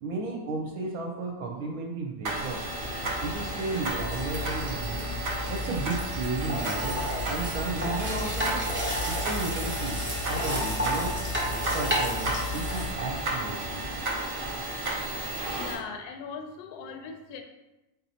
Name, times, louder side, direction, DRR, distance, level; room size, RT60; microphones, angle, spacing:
voice 1, 0.0-2.6 3.2-5.0 5.5-7.0 7.3-8.7 9.0-11.1 11.5-13.8, right 3 dB, 70° right, 0 dB, 1.0 m, -34 dB
sound 1, 2.2-15.7, right 2 dB, 40° right, 0.9 m, -33 dB
sound 2, 2.5-14.7, left 2 dB, 60° left, 0.6 m, -42 dB
sound 3, 4.0-12.9, equal, 15° right, 0.3 m, -32 dB
voice 2, 15.6-17.4, left 5 dB, 75° left, 5 dB, 1.1 m, -39 dB
4.2 x 4.0 x 2.7 m, 1.0 s
omnidirectional pair, 1.7 m